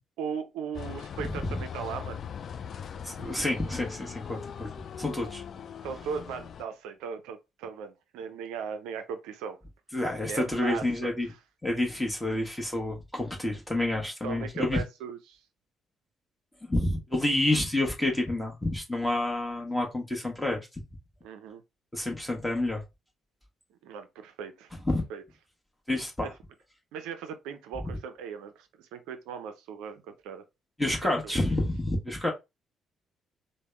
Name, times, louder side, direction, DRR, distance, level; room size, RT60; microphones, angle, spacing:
voice 1, 0.2-2.2 5.8-9.6 10.3-11.4 14.2-15.4 21.2-21.6 23.8-24.7 25.1-25.2 26.9-30.4 31.2-31.4, right 6 dB, 65° right, 0.5 m, -38 dB
sound 1, 0.7-6.6, left 8 dB, 50° left, 0.3 m, -40 dB
voice 2, 3.0-4.7 5.0-5.4 9.9-11.3 11.6-14.8 16.7-20.6 21.9-22.8 24.9-25.0 25.9-26.3 30.8-32.3, left 1 dB, 10° left, 1.2 m, -29 dB
3.4 x 2.1 x 3.3 m
figure-of-eight pair, 45°, 0 cm